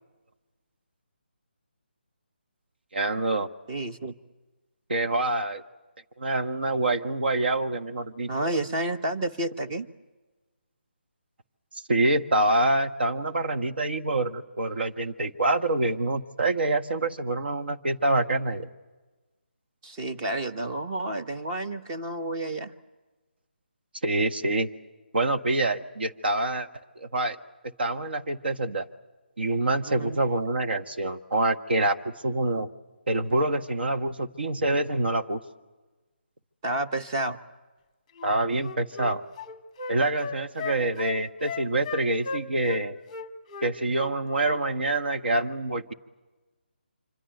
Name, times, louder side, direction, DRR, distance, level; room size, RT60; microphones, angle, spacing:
voice 1, 2.9-3.5 4.9-5.6 6.2-8.5 11.9-18.7 24.0-24.7 25.1-26.7 26.9-27.4 27.8-28.9 29.4-32.7 33.1-35.4 38.2-39.2 39.9-42.9 43.6-45.9, right 2 dB, 65° right, 5 dB, 1.6 m, -26 dB
voice 2, 3.7-4.1 8.3-9.9 19.8-22.7 29.9-30.2 36.6-37.4, right 1 dB, 25° right, 6 dB, 1.1 m, -30 dB
Wind instrument woodwind instrument, 38.2-42.8 43.1-44.2 44.4-44.6, left 5 dB, 15° left, 1.1 m, -36 dB
26.0 x 26.0 x 8.0 m, 1.2 s
figure-of-eight pair, 160°, 6 cm